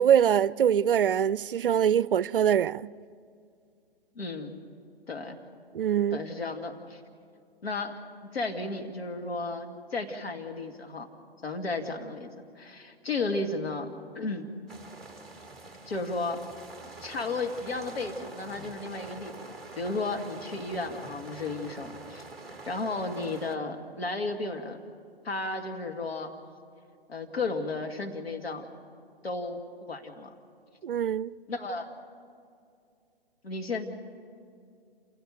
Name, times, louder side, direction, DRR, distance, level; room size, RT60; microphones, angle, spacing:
voice 1, 0.0-2.9 5.7-6.2 30.8-31.3, right 9 dB, 60° right, 0.5 m, -23 dB
voice 2, 4.2-4.6 5.1-5.4 6.1-7.0 7.6-7.9 8.3-11.1 11.4-12.3 12.6-13.9 14.1-14.5 15.9-16.4 17.0-22.2 22.7-24.8 25.2-26.3 27.1-28.6 29.2-29.6 29.9-30.3 31.5-31.9 33.4-33.8, left 3 dB, 70° left, 2.3 m, -33 dB
sound 1, 14.7-23.6, right 3 dB, ahead, 1.4 m, -45 dB
27.5 x 16.5 x 7.0 m
figure-of-eight pair, 130°, 31 cm